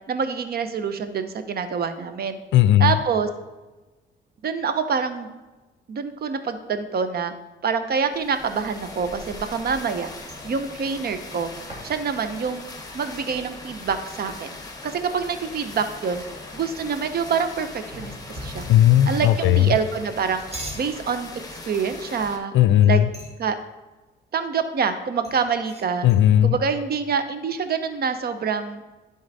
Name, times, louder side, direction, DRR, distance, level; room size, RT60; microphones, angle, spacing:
voice 1, 0.1-2.4 2.8-3.3 4.4-5.3 5.9-7.3 7.6-10.1 10.4-11.5 11.8-12.6 12.9-14.5 14.8-16.2 16.5-18.1 18.4-18.7 19.1-20.4 20.7-21.3 21.7-22.5 22.9-23.0 23.4-23.6 24.3-26.1 26.4-28.8, right 6 dB, 50° right, 10 dB, 0.8 m, -26 dB
voice 2, 2.5-3.0 18.7-19.8 22.5-23.1 26.0-26.6, left 12 dB, 75° left, 13 dB, 0.4 m, -16 dB
sound 1, 8.1-22.4, left 2 dB, 20° left, 1.4 m, -40 dB
sound 2, 10.2-15.1 15.4-15.5 15.7-16.4 17.9-19.1 20.2-20.9 21.9-22.2 22.7-23.5 25.2-26.2, equal, 30° right, 1.6 m, -41 dB
10.5 x 3.9 x 4.1 m, 1.1 s
cardioid pair, 90°, 20 cm